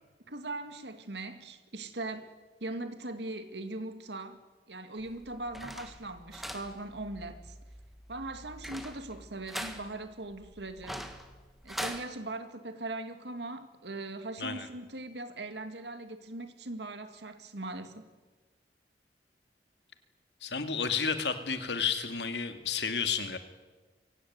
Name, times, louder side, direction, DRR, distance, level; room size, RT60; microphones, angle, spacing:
voice 1, 0.3-2.3 2.6-4.4 4.7-7.6 8.1-11.1 11.6-18.1, right 2 dB, 85° right, 2.3 m, -40 dB
sound 1, 5.0-12.0, equal, ahead, 1.7 m, -43 dB
voice 2, 20.4-23.4, left 6 dB, 85° left, 2.3 m, -31 dB
23.5 x 17.0 x 9.5 m
head